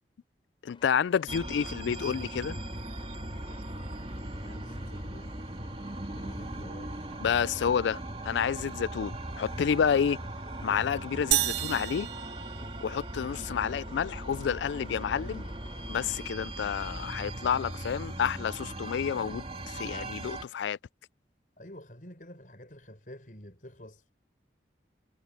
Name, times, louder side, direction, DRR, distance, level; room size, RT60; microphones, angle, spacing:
voice 1, 0.6-2.6 7.2-10.2 10.6-12.1 12.8-15.5 15.9-20.8, left 7 dB, 85° left, 0.3 m, -29 dB
sound 1, 0.7-16.3, left 2 dB, 30° left, 7.2 m, -55 dB
sound 2, 1.3-20.4, right 1 dB, 30° right, 2.4 m, -39 dB
voice 2, 4.4-5.4 6.2-7.0 21.6-24.1, left 1 dB, 50° left, 5.9 m, -48 dB
sound 3, 11.3-13.2, right 14 dB, 70° right, 0.6 m, -31 dB
head